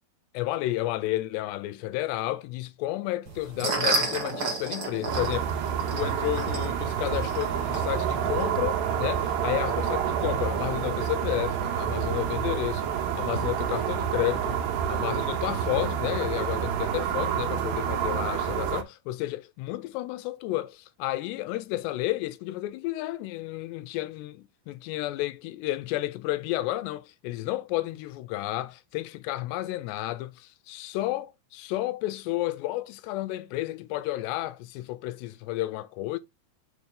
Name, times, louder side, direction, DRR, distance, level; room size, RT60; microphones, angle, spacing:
voice 1, 0.3-5.5 5.9-36.2, left 16 dB, 85° left, 2.8 m, -31 dB
sound 1, 3.2-8.4, right 3 dB, 40° right, 1.4 m, -32 dB
sound 2, 5.1-18.8, right 8 dB, 85° right, 3.3 m, -28 dB
6.5 x 5.3 x 3.7 m
omnidirectional pair, 4.8 m